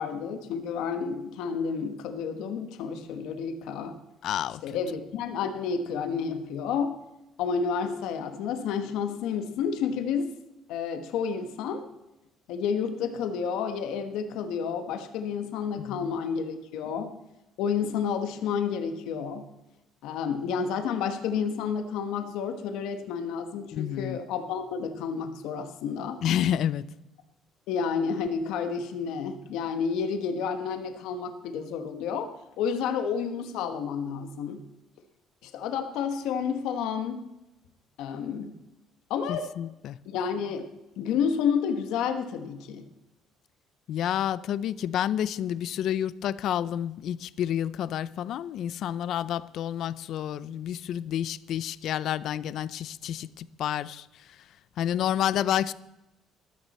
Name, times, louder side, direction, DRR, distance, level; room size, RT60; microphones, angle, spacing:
voice 1, 0.0-3.9 4.6-7.0 7.4-10.3 10.7-11.9 12.5-17.2 17.6-19.4 20.0-26.2 27.7-32.3 32.6-34.6 35.4-37.2 38.0-38.5 39.1-39.5 40.0-40.7 41.0-42.8, left 6 dB, 80° left, 1.3 m, -30 dB
voice 2, 4.2-4.8 15.8-16.1 23.7-24.2 26.2-26.9 39.3-40.0 43.9-54.1 54.8-55.7, left 10 dB, 55° left, 0.5 m, -29 dB
14.5 x 12.5 x 4.2 m
cardioid pair, 155°, 0 cm